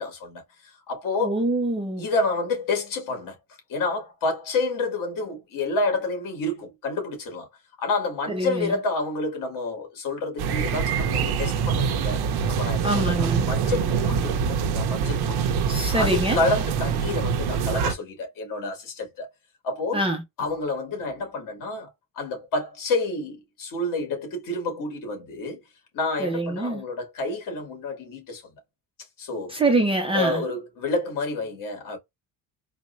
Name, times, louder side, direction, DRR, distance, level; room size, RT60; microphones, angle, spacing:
voice 1, 0.0-1.4 2.0-3.4 3.7-7.5 7.8-12.2 12.5-15.5 15.9-19.3 19.6-20.0 20.4-25.6 25.9-28.4 29.2-29.6 30.1-32.0, left 3 dB, 55° left, 2.2 m, -29 dB
voice 2, 1.2-2.0 8.3-8.7 12.8-13.5 15.7-16.4 19.9-20.2 26.2-26.8 29.5-30.4, right 2 dB, 15° right, 0.5 m, -24 dB
sound 1, 10.4-17.9, right 6 dB, 75° right, 0.8 m, -25 dB
4.4 x 2.1 x 2.6 m
cardioid pair, 180°, 39 cm